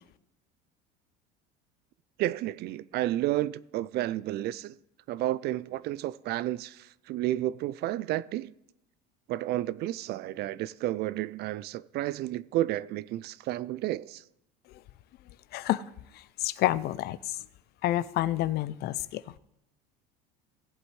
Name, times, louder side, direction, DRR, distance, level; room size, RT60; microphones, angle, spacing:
voice 1, 2.2-4.8 5.1-8.5 9.3-14.2, right 14 dB, 50° right, 0.4 m, -31 dB
voice 2, 15.5-15.8 16.1-17.4 17.8-19.2, left 14 dB, 50° left, 0.5 m, -29 dB
18.0 x 7.9 x 3.2 m
supercardioid pair, 105°, 21 cm